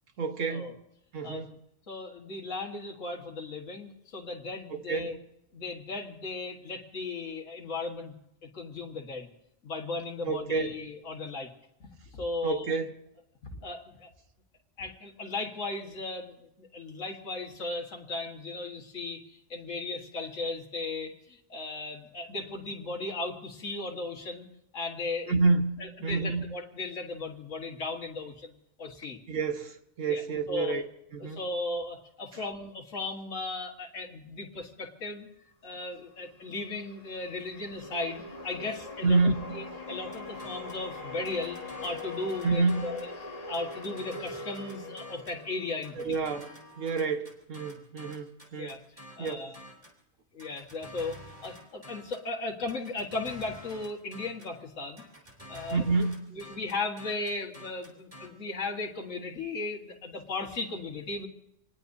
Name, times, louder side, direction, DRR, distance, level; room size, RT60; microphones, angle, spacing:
voice 1, 0.2-0.8 1.1-1.6 4.7-5.2 10.2-10.7 12.4-13.0 25.2-26.5 29.3-30.8 31.1-31.4 32.3-32.4 39.0-39.6 42.4-43.0 45.9-48.8 49.2-49.5 55.7-56.3, right 4 dB, 75° right, 1.7 m, -29 dB
voice 2, 1.9-5.1 5.5-8.1 8.4-9.3 9.6-11.5 11.8-12.7 13.6-14.1 14.8-24.5 24.7-25.3 25.8-28.5 28.8-29.2 30.1-30.2 30.5-30.8 31.2-35.3 35.6-39.2 39.5-43.1 43.5-46.1 48.6-48.8 49.2-49.6 50.3-55.0 55.5-55.8 56.4-61.3, left 3 dB, 75° left, 2.0 m, -36 dB
sound 1, 36.2-46.6, left 2 dB, 30° left, 1.8 m, -42 dB
sound 2, 40.1-40.9 41.3-43.1 43.5-45.4 45.8-50.0 50.4-52.3 52.7-54.6 55.0-58.3, equal, 25° right, 3.3 m, -49 dB
27.0 x 19.5 x 2.7 m
omnidirectional pair, 1.3 m